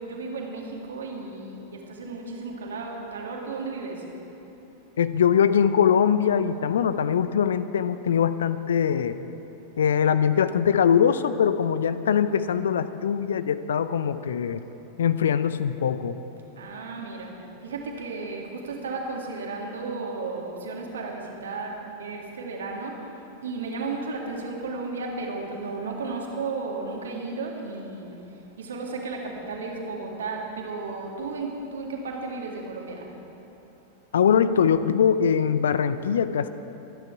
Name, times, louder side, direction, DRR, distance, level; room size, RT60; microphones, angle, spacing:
voice 1, 0.0-4.1 16.6-33.1, right 3 dB, 65° right, 0 dB, 2.1 m, -34 dB
voice 2, 5.0-9.2 9.8-14.6 15.0-16.2 34.1-36.5, left 8 dB, 65° left, 13 dB, 0.5 m, -22 dB
23.5 x 9.6 x 4.7 m, 3.0 s
figure-of-eight pair, 90°, 0 cm